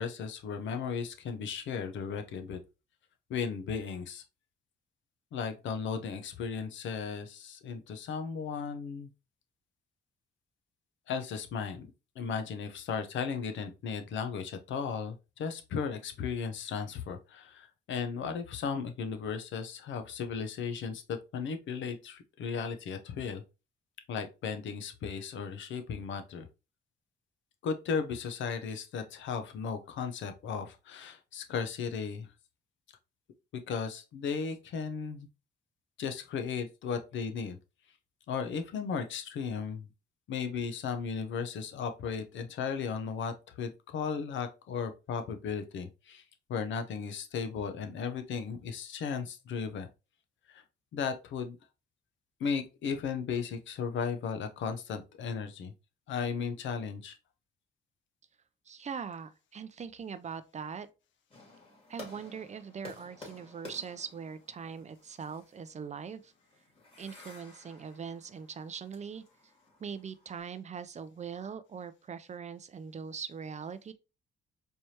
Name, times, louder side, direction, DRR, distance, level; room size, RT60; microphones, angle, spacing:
voice 1, 0.0-2.6 3.3-4.2 5.3-9.1 11.1-11.9 12.2-23.4 24.1-26.5 27.6-32.3 33.7-35.3 36.0-37.6 38.3-39.9 40.3-46.2 46.5-49.9 50.5-50.6 50.9-51.6 52.4-55.7 56.1-57.2, left 6 dB, 70° left, 0.8 m, -35 dB
voice 2, 58.7-60.9 61.9-66.3 67.0-69.2 69.8-73.9, right 6 dB, 35° right, 0.5 m, -41 dB
sound 1, 61.3-70.4, left 2 dB, 30° left, 2.6 m, -53 dB
4.5 x 3.3 x 2.8 m
cardioid pair, 90°, 20 cm